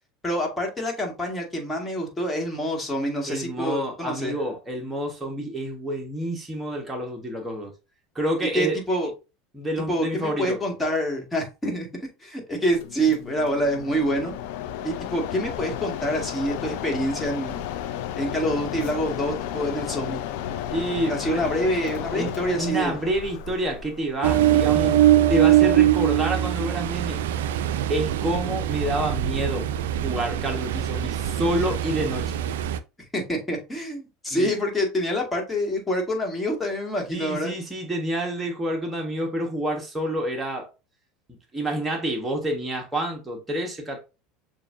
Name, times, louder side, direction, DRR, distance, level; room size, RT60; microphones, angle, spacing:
voice 1, 0.2-4.3 8.5-9.1 9.9-11.9 12.2-14.3 14.8-17.7 18.2-20.2 21.1-23.0 33.1-37.5, equal, 15° left, 1.9 m, -26 dB
voice 2, 3.3-7.7 8.1-8.8 9.5-10.6 20.7-21.4 22.1-25.0 25.3-27.2 27.9-29.7 30.0-32.3 34.3-34.5 37.1-40.7 41.5-44.0, right 1 dB, 10° right, 1.3 m, -28 dB
Mechanisms, 12.7-25.1, left 10 dB, 70° left, 0.5 m, -33 dB
Ocean, 24.2-32.8, right 12 dB, 80° right, 0.3 m, -22 dB
6.7 x 2.6 x 2.6 m
hypercardioid pair, 90°, 0 cm